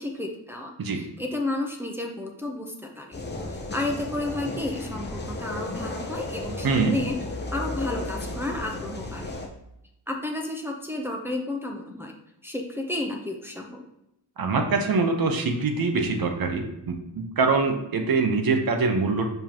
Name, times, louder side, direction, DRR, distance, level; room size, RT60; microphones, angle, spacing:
voice 1, 0.0-3.2 3.5-7.2 7.5-9.4 10.1-12.1 12.4-13.8, left 2 dB, 5° right, 0 dB, 0.7 m, -32 dB
sound 1, 3.1-9.5, left 2 dB, 25° left, 0.9 m, -34 dB
voice 2, 6.6-6.9 14.4-19.3, right 4 dB, 50° right, 5 dB, 1.0 m, -24 dB
7.3 x 5.4 x 3.0 m, 0.84 s
wide cardioid pair, 135°, 45 cm